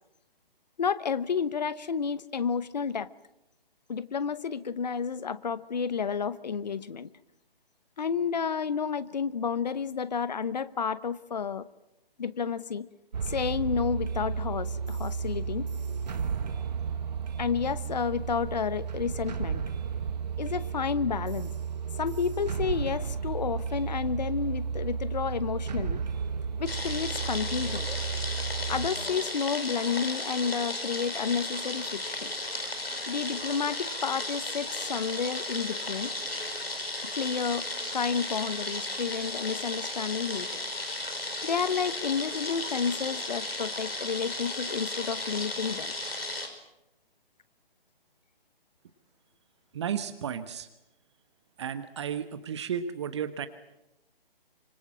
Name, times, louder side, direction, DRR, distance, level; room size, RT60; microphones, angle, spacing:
voice 1, 0.8-3.1 3.9-7.1 8.0-11.7 12.2-12.9 13.2-15.7 17.4-19.6 20.4-21.5 22.0-26.0 26.6-27.9 28.7-32.3 33.1-36.1 37.1-40.6 41.4-45.9, left 6 dB, 45° left, 16 dB, 1.1 m, -31 dB
sound 1, 13.1-28.9, right 6 dB, 45° right, 1.8 m, -33 dB
sound 2, 26.7-46.5, left 2 dB, 80° left, 5.5 m, -35 dB
voice 2, 49.7-50.7 51.6-53.5, right 8 dB, 30° right, 11 dB, 1.2 m, -33 dB
25.5 x 25.0 x 7.5 m, 0.91 s
figure-of-eight pair, 140°, 29 cm